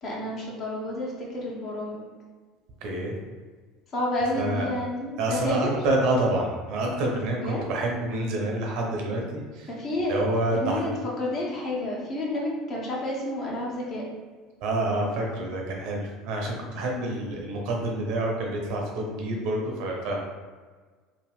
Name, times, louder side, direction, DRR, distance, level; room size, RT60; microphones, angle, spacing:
voice 1, 0.0-2.0 3.9-5.7 7.4-7.6 9.7-10.2 10.5-14.0, left 1 dB, 45° left, -4 dB, 0.9 m, -30 dB
voice 2, 2.8-3.2 4.4-4.7 5.2-9.7 10.1-10.8 14.6-20.2, right 1 dB, 60° right, 0 dB, 0.6 m, -28 dB
2.8 x 2.3 x 3.5 m, 1.4 s
figure-of-eight pair, 65°, 0 cm